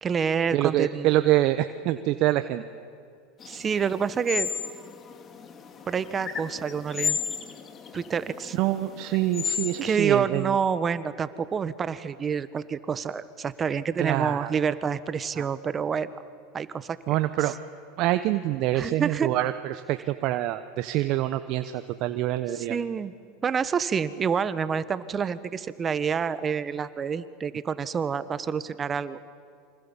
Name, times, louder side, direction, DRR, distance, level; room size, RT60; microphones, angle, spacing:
voice 1, 0.0-1.1 3.5-4.5 5.9-7.2 7.9-8.6 9.8-16.1 16.5-16.9 17.4-17.5 18.7-19.3 22.5-23.1 23.4-29.2, right 6 dB, 30° right, 14 dB, 1.3 m, -28 dB
voice 2, 0.5-2.6 8.6-10.5 14.0-14.5 15.4-15.5 17.1-17.5 18.0-22.8, right 15 dB, 55° right, 10 dB, 1.0 m, -25 dB
sound 1, 3.4-9.9, left 7 dB, 35° left, 2.3 m, -34 dB
28.0 x 25.5 x 7.3 m, 2.2 s
hypercardioid pair, 95°, 0 cm